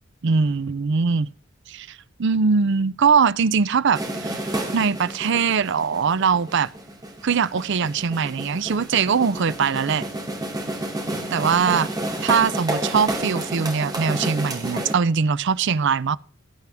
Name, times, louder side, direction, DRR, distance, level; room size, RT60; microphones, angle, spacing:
voice 1, 0.2-1.3 1.7-6.7 7.2-10.1 11.3-11.9 12.2-16.2, right 5 dB, 60° right, 0.5 m, -21 dB
sound 1, 3.9-14.9, right 1 dB, 20° right, 2.7 m, -30 dB
18.0 x 9.2 x 3.5 m
head